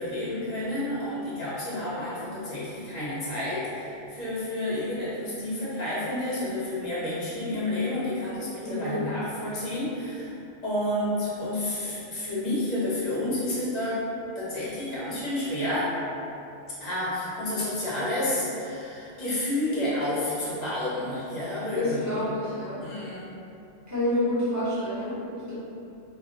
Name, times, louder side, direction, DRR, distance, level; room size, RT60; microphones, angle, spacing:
voice 1, 0.0-14.0 14.3-16.0 16.8-22.2 22.8-23.3, left 1 dB, 40° left, -9 dB, 0.9 m, -30 dB
voice 2, 8.6-9.0 21.7-22.8 23.9-25.5, left 1 dB, 15° right, -12 dB, 0.7 m, -28 dB
2.4 x 2.1 x 3.8 m, 2.7 s
omnidirectional pair, 1.2 m